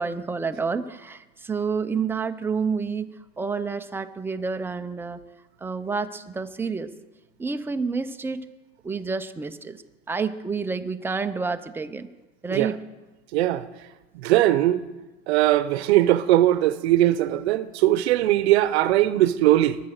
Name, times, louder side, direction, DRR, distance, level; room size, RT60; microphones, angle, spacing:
voice 1, 0.0-5.2 5.6-6.9 7.4-8.4 8.8-9.8 10.1-12.1 12.4-12.8, right 5 dB, 5° right, 0.5 m, -29 dB
voice 2, 13.3-13.6 14.2-14.8 15.3-19.8, right 14 dB, 85° right, 0.8 m, -20 dB
22.5 x 8.8 x 6.5 m
supercardioid pair, 140°, 32 cm